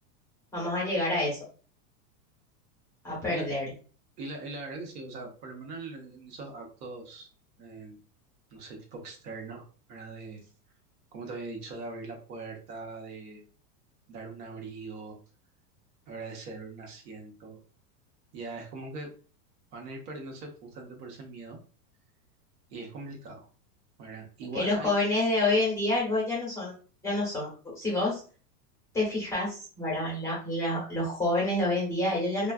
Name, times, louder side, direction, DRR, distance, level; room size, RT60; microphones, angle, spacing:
voice 1, 0.5-1.4 3.0-3.7 24.5-26.7 27.0-28.2 28.9-32.5, left 2 dB, 5° left, -6 dB, 0.8 m, -28 dB
voice 2, 4.2-7.3 7.6-8.0 8.5-10.5 11.1-13.5 14.1-15.2 16.1-17.6 18.3-19.1 19.7-21.6 22.7-23.5 24.0-24.9, right 3 dB, 70° right, 0 dB, 1.0 m, -41 dB
2.4 x 2.3 x 2.2 m, 0.39 s
supercardioid pair, 150°, 47 cm